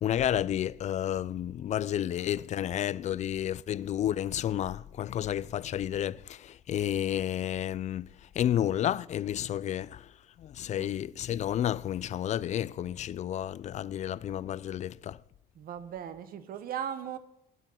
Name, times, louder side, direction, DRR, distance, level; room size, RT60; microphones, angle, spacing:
voice 1, 0.0-8.1 8.4-10.0 10.4-15.2, left 11 dB, 45° left, 0.4 m, -31 dB
voice 2, 15.6-17.2, right 9 dB, 60° right, 1.3 m, -38 dB
17.5 x 7.8 x 5.7 m
cardioid pair, 110°, 17 cm